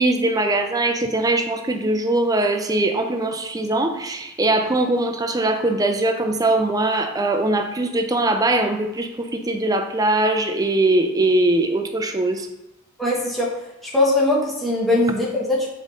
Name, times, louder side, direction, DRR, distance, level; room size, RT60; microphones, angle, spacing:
voice 1, 0.0-12.5, right 2 dB, 15° right, 6 dB, 0.5 m, -21 dB
voice 2, 13.0-13.5 13.8-15.7, left 2 dB, ahead, -6 dB, 1.1 m, -20 dB
7.2 x 3.8 x 3.7 m, 0.92 s
head